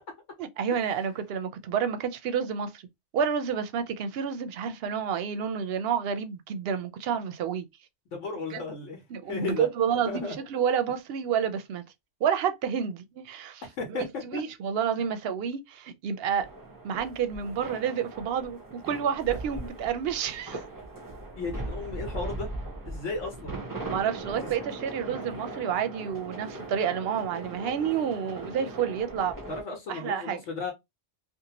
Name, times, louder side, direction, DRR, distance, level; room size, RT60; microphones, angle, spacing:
voice 1, 0.4-2.8 3.1-7.7 8.5-8.6 9.1-11.8 12.2-13.6 13.9-16.5 16.8-18.6 18.8-20.6 23.9-29.3 29.9-30.4, right 8 dB, 65° right, 0.7 m, -29 dB
voice 2, 8.1-9.7 10.1-10.3 13.8-14.0 15.0-15.1 21.4-22.5 22.9-23.6 29.5-30.7, left 4 dB, 85° left, 1.2 m, -34 dB
sound 1, 16.4-29.6, right 2 dB, 20° right, 0.6 m, -39 dB
2.6 x 2.4 x 2.8 m
omnidirectional pair, 1.2 m